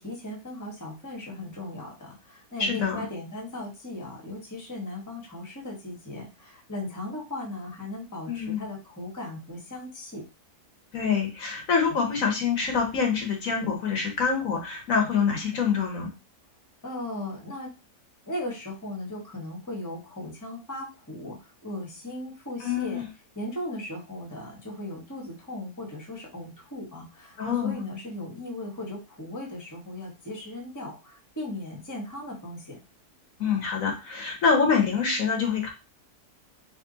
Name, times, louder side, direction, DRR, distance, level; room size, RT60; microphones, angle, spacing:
voice 1, 0.0-10.3 16.8-17.7 18.3-23.0 23.3-32.8, left 1 dB, 10° left, 0 dB, 1.3 m, -37 dB
voice 2, 2.6-3.1 8.3-8.6 10.9-16.1 22.6-23.1 27.4-27.7 33.4-35.7, left 6 dB, 65° left, 2 dB, 1.3 m, -25 dB
3.7 x 3.2 x 4.0 m, 0.28 s
omnidirectional pair, 1.7 m